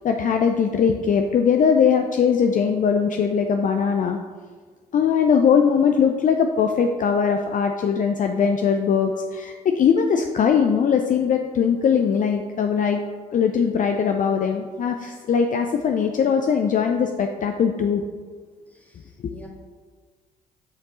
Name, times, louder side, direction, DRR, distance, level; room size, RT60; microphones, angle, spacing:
voice 1, 0.0-4.2 4.9-13.0 13.3-18.0, left 6 dB, 45° left, 4 dB, 0.5 m, -20 dB
voice 2, 18.7-19.5, equal, 10° left, -3 dB, 1.8 m, -47 dB
6.5 x 5.1 x 3.0 m, 1.5 s
hypercardioid pair, 50°, 19 cm